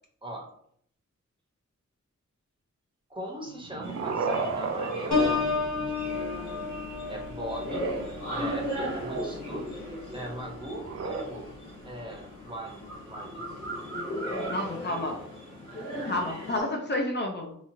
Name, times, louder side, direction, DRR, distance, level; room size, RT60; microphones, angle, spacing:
voice 1, 3.1-6.2 7.1-7.9 8.3-9.8 10.1-11.5 11.8-13.4, right 1 dB, 15° right, -1 dB, 0.8 m, -40 dB
sound 1, 3.5-6.1 7.6-9.4 10.7-11.2, right 5 dB, 55° right, 0.4 m, -34 dB
sound 2, 3.8-16.6, equal, 85° left, 1.2 m, -37 dB
Piano, 5.1-10.7 11.2-11.5, left 4 dB, 65° left, 1.0 m, -32 dB
voice 2, 14.5-15.2 16.0-17.6, left 1 dB, 35° left, 1 dB, 0.5 m, -30 dB
2.9 x 2.4 x 2.7 m, 0.65 s
cardioid pair, 60°, 30 cm